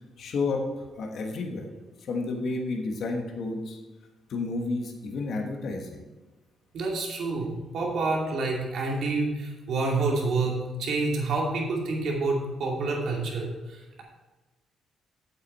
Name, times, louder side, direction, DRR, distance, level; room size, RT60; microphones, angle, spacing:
voice 1, 0.2-0.6 1.0-1.7 2.0-3.8 4.3-6.0, left 3 dB, 65° left, 2 dB, 1.4 m, -31 dB
voice 2, 6.7-14.0, right 3 dB, 70° right, -1 dB, 2.4 m, -28 dB
8.3 x 8.1 x 4.3 m, 1.2 s
cardioid pair, 90°, 0 cm